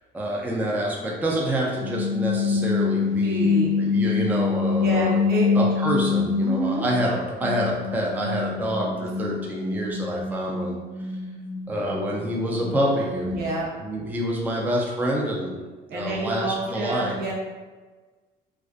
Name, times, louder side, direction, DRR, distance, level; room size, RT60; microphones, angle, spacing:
voice 1, 0.1-3.5 3.8-5.2 5.6-10.8 11.7-13.4 13.8-15.5 15.9-17.2, right 1 dB, 10° right, -2 dB, 0.4 m, -27 dB
sound 1, 1.8-7.0 7.4-13.6, left 5 dB, 80° left, 0.4 m, -26 dB
voice 2, 3.2-3.8 4.8-5.5 6.4-6.9 13.3-13.7 15.9-17.3, right 2 dB, 65° right, -3 dB, 0.7 m, -28 dB
2.3 x 2.2 x 2.4 m, 1.3 s
cardioid pair, 110°, 17 cm